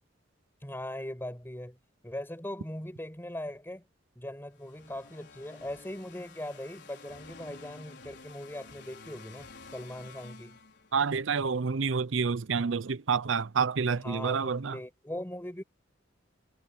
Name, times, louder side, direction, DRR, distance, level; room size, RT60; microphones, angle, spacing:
voice 1, 0.6-1.8 2.0-3.8 4.1-10.6 14.0-15.6, left 1 dB, 10° left, 8.0 m, -40 dB
sound 1, 4.6-11.2, left 4 dB, 65° left, 4.8 m, -51 dB
voice 2, 10.9-14.8, right 5 dB, 75° right, 0.6 m, -28 dB
head